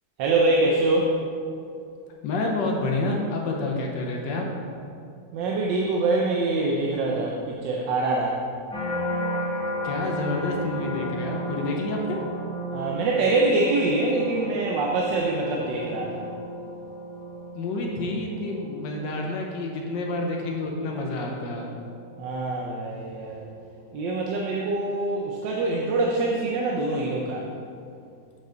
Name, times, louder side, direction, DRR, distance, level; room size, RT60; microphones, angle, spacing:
voice 1, 0.2-1.1 5.3-8.4 12.7-16.3 22.2-23.4 23.9-27.4, right 2 dB, 90° right, -1 dB, 1.3 m, -24 dB
voice 2, 2.2-4.4 9.8-12.2 17.5-21.7, left 2 dB, 85° left, 0 dB, 1.5 m, -28 dB
sound 1, 8.7-23.9 24.4-24.8, equal, 5° left, 1.0 m, -35 dB
7.5 x 5.5 x 3.8 m, 2.4 s
omnidirectional pair, 1.9 m